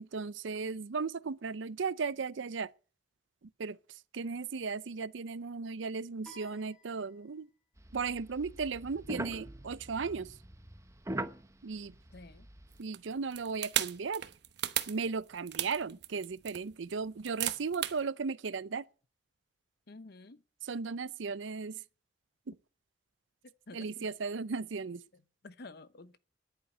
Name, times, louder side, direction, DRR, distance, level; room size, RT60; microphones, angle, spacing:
voice 1, 0.0-2.7 3.4-7.5 7.9-10.4 11.6-11.9 12.8-14.3 14.9-18.9 20.6-21.8 22.5-22.6 23.7-25.0, right 5 dB, 80° right, 0.6 m, -36 dB
sound 1, 6.2-7.7, left 2 dB, 5° left, 4.4 m, -57 dB
sound 2, 7.8-12.8, right 1 dB, 15° right, 0.8 m, -43 dB
voice 2, 12.1-12.5 19.9-20.4 23.4-24.1 25.4-26.2, left 2 dB, 55° left, 0.9 m, -50 dB
sound 3, 12.7-18.0, right 12 dB, 60° right, 0.9 m, -35 dB
10.5 x 9.1 x 9.2 m
head